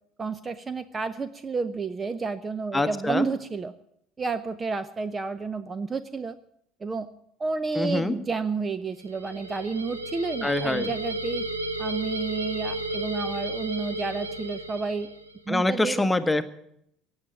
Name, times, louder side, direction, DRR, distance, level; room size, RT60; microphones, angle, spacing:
voice 1, 0.2-3.7 4.2-6.4 6.8-7.1 7.4-11.4 11.8-15.1 15.5-16.0, right 4 dB, 25° right, 15 dB, 0.6 m, -31 dB
voice 2, 2.7-3.3 7.7-8.1 10.4-10.9 15.5-16.4, left 2 dB, 10° left, 10 dB, 1.1 m, -25 dB
sound 1, 9.0-15.4, right 1 dB, 85° right, 1.1 m, -33 dB
16.5 x 8.1 x 8.6 m, 0.75 s
figure-of-eight pair, 65°, 0 cm